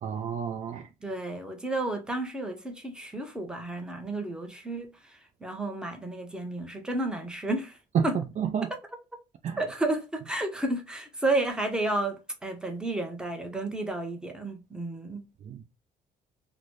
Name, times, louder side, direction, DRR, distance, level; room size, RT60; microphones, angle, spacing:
voice 1, 0.0-0.9 7.9-8.7 9.4-9.6 15.5-15.6, right 7 dB, 45° right, 0.4 m, -30 dB
voice 2, 1.0-7.8 8.0-8.2 9.6-15.2, right 2 dB, 5° right, 0.8 m, -32 dB
3.8 x 2.1 x 3.1 m
cardioid pair, 110°, 17 cm